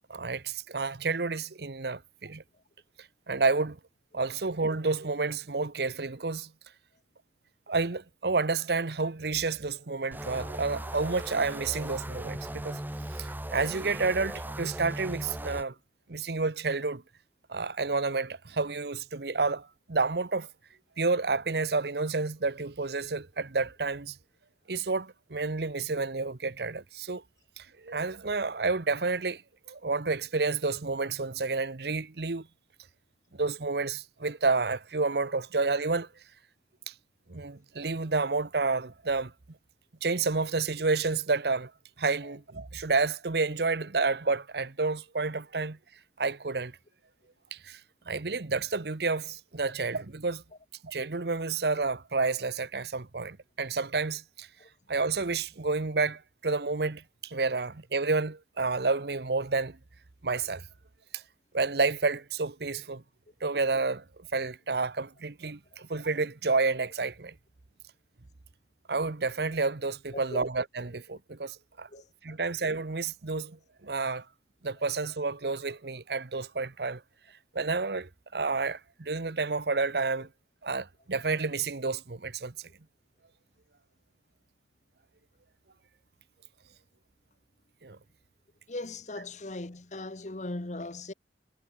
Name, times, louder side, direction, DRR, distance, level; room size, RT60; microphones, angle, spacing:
voice 1, 0.1-2.4 3.3-3.8 4.1-6.5 7.7-12.8 13.2-15.7 16.1-17.0 17.5-20.5 21.0-24.2 24.7-27.2 27.6-29.4 29.7-32.5 33.3-36.1 36.9-37.0 37.3-39.3 40.0-41.7 42.0-45.8 46.2-46.8 47.5-47.8 48.1-50.4 50.8-54.5 54.9-59.8 60.2-60.6 61.1-61.2 61.5-63.0 63.4-64.0 64.3-67.3 68.9-71.9 72.2-74.2 74.6-77.0 77.5-80.3 80.6-82.5 87.8-88.0, right 3 dB, 65° right, 0.9 m, -30 dB
sound 1, 10.1-15.6, right 1 dB, 10° right, 1.2 m, -38 dB
voice 2, 88.7-91.1, left 2 dB, 40° left, 1.1 m, -38 dB
head